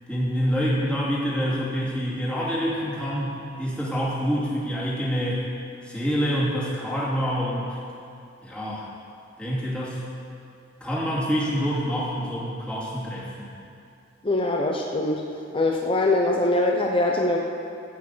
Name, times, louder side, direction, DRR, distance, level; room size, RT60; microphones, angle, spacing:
voice 1, 0.1-5.4 5.8-7.7 8.4-8.9 9.4-10.0 10.8-13.5, equal, 5° left, -7 dB, 2.7 m, -26 dB
voice 2, 14.2-15.2 15.5-17.4, left 2 dB, 30° left, 0 dB, 0.8 m, -22 dB
15.0 x 8.4 x 5.6 m, 2.5 s
head